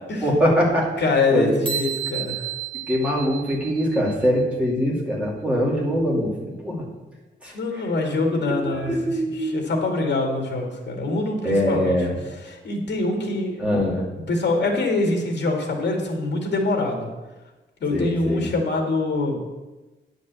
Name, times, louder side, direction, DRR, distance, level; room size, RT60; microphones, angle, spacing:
voice 1, 0.2-0.9 1.3-1.6 2.9-6.9 7.4-7.5 8.4-9.6 11.4-12.1 13.6-14.1 17.9-18.5, equal, 5° right, -4 dB, 2.5 m, -23 dB
voice 2, 1.0-2.4 7.5-8.9 9.4-12.0 12.4-13.6 14.3-17.1 17.8-19.4, left 2 dB, 70° left, 2 dB, 2.2 m, -24 dB
sound 1, 1.7-4.3, right 9 dB, 25° right, 1.2 m, -31 dB
9.4 x 5.3 x 8.0 m, 1.1 s
wide cardioid pair, 175°, 19 cm